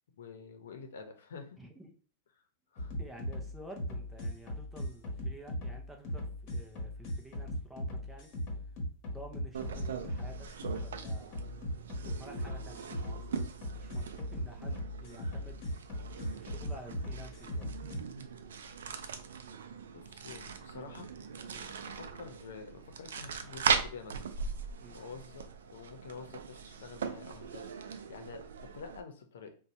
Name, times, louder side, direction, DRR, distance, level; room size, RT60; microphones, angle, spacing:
voice 1, 0.1-1.6 2.4-2.5 2.7-2.9 19.9-21.1 21.8-24.2 24.6-25.4 25.7-29.6, left 5 dB, 85° left, 6 dB, 0.7 m, -48 dB
voice 2, 1.6-2.0 3.0-8.3 9.1-11.4 12.0-15.7 16.3-17.7 21.5-21.7 24.8-25.0, right 1 dB, 5° right, 2 dB, 0.6 m, -51 dB
sound 1, 2.8-18.0, equal, 45° left, 1.2 m, -38 dB
sound 2, 9.5-29.0, right 6 dB, 90° right, 0.4 m, -40 dB
2.7 x 2.3 x 4.1 m, 0.40 s
supercardioid pair, 145°, 0 cm